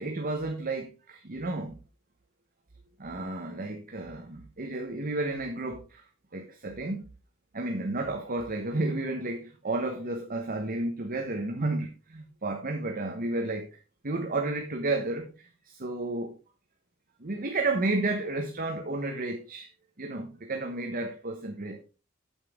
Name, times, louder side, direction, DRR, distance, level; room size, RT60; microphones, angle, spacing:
voice 1, 0.0-1.8 3.0-6.0 6.3-7.0 7.5-13.8 14.0-16.4 17.2-19.7 20.0-21.8, right 2 dB, 45° right, 1.2 m, -32 dB
8.5 x 8.2 x 3.6 m
head